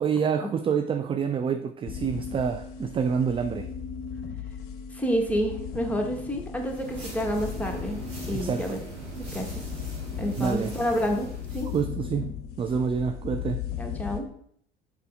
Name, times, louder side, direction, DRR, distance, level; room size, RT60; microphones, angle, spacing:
voice 1, 0.0-3.7 8.3-8.8 10.4-10.7 11.7-13.7, right 6 dB, 20° right, 9 dB, 0.3 m, -27 dB
sound 1, 1.9-14.2, left 8 dB, 45° left, 0.8 m, -37 dB
voice 2, 4.9-8.0 8.3-8.8 9.3-9.5 10.2-11.7 13.8-14.3, equal, 5° left, 1 dB, 1.3 m, -29 dB
sound 2, 6.6-11.9, right 2 dB, 85° right, 2.4 m, -40 dB
6.7 x 4.9 x 3.4 m, 0.65 s
figure-of-eight pair, 65°, 30 cm